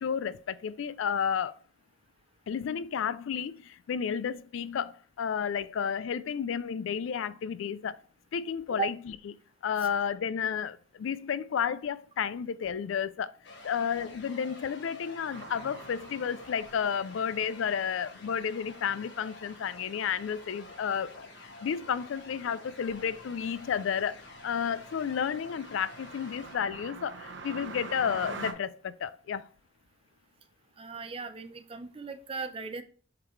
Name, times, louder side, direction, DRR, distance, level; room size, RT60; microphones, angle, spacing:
voice 1, 0.0-1.6 2.5-8.0 8.3-9.2 9.6-13.4 13.6-29.5, left 7 dB, 80° left, 0.3 m, -32 dB
sound 1, 13.4-26.6, left 2 dB, 60° left, 1.4 m, -50 dB
sound 2, 15.3-28.5, right 4 dB, 60° right, 0.8 m, -48 dB
voice 2, 30.8-32.8, right 5 dB, 30° right, 0.5 m, -36 dB
7.6 x 4.0 x 3.1 m
head